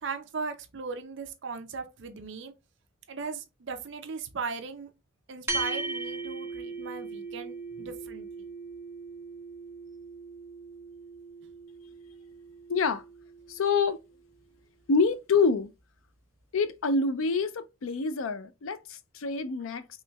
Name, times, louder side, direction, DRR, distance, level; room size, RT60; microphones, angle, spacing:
voice 1, 0.0-2.5 3.1-4.9 5.3-8.3, right 4 dB, 60° right, 0.5 m, -38 dB
sound 1, 5.5-14.1, right 3 dB, 10° right, 0.5 m, -39 dB
voice 2, 12.7-13.0 13.5-14.0 14.9-15.7 16.5-19.9, left 4 dB, 80° left, 0.5 m, -26 dB
4.3 x 3.1 x 2.2 m
head